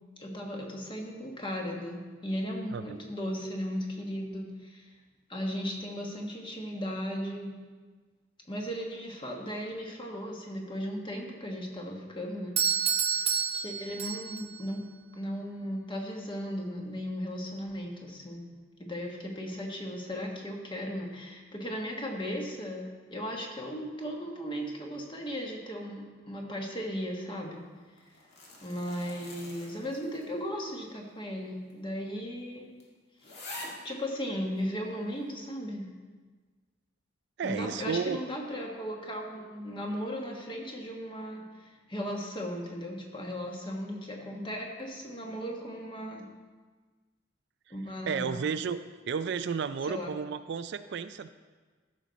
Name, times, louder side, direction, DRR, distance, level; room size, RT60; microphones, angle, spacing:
voice 1, 0.2-4.9 5.3-7.5 8.5-12.6 13.1-14.8 15.1-18.4 18.8-27.6 28.6-32.6 33.8-35.9 37.4-46.2 47.7-48.5 49.9-50.1, equal, 25° left, 0 dB, 1.4 m, -36 dB
Doorbell, 12.6-14.6, right 7 dB, 30° right, 0.7 m, -29 dB
sound 1, 28.0-30.5 30.8-30.9 31.7-31.8 32.2-32.3 32.8-32.9 33.2-33.9 34.6-34.7, left 1 dB, 55° left, 2.0 m, -45 dB
voice 2, 37.4-38.2 47.7-47.8 48.1-48.8 49.1-51.3, right 6 dB, 60° right, 11 dB, 0.4 m, -32 dB
14.0 x 6.4 x 4.1 m, 1.4 s
head